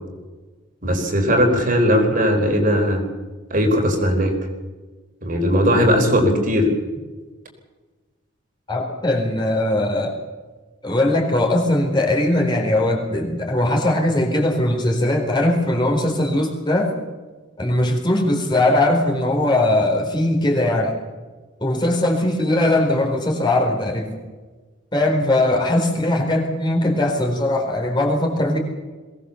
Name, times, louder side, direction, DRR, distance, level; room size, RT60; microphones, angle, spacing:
voice 1, 0.8-3.0 3.5-4.3 5.2-6.7, equal, 40° right, 3 dB, 4.2 m, -18 dB
voice 2, 8.7-10.1 10.8-16.9 17.6-21.0 21.6-24.2 24.9-28.6, left 1 dB, 20° left, 0 dB, 4.2 m, -20 dB
23.0 x 18.5 x 7.1 m, 1.3 s
head